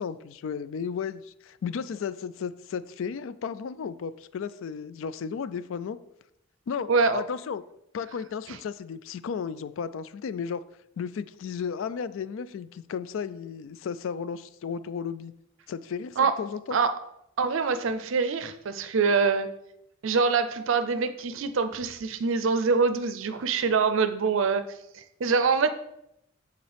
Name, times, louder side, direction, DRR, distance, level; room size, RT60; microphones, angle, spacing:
voice 1, 0.0-6.0 6.7-7.6 7.9-10.6 11.0-15.3 15.7-16.8, left 6 dB, 70° left, 15 dB, 0.3 m, -34 dB
voice 2, 6.9-7.2 16.2-16.3 16.7-16.9 17.4-19.5 20.0-24.6 24.9-25.7, right 5 dB, 65° right, 11 dB, 0.5 m, -24 dB
7.8 x 4.0 x 3.4 m, 0.79 s
head